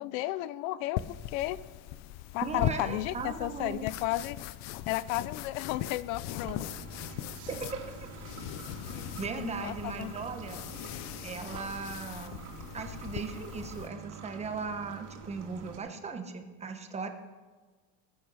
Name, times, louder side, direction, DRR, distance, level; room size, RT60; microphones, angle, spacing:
voice 1, 0.0-1.6 2.3-4.4 4.9-6.7 9.3-10.1, left 15 dB, 85° left, 18 dB, 0.7 m, -33 dB
sound 1, 1.0-13.9, left 13 dB, 45° left, 0.5 m, -40 dB
voice 2, 2.4-3.9 7.5-8.0 8.9-10.6 11.2-12.4 12.7-17.1, right 4 dB, 15° right, 6 dB, 1.0 m, -38 dB
sound 2, 6.4-15.8, right 5 dB, 45° right, 2.6 m, -46 dB
19.0 x 8.5 x 6.2 m, 1.4 s
cardioid pair, 170°, 39 cm